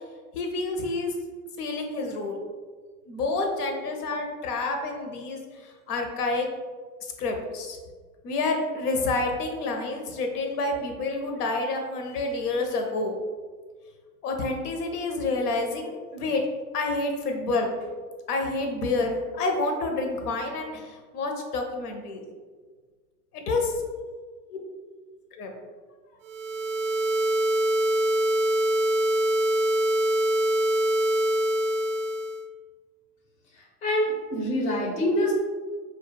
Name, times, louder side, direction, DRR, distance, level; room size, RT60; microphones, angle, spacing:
voice 1, 0.3-1.1 1.6-2.4 3.1-6.5 7.2-7.8 8.2-13.2 14.2-16.4 16.7-17.7 18.3-22.2 23.3-23.7 25.4-25.5, left 3 dB, 80° left, 3 dB, 0.6 m, -28 dB
sound 1, 26.2-32.4, right 1 dB, 50° right, 0.4 m, -24 dB
voice 2, 33.8-35.3, left 1 dB, 20° left, -1 dB, 0.3 m, -25 dB
2.2 x 2.0 x 3.1 m, 1.5 s
hypercardioid pair, 100°, 45 cm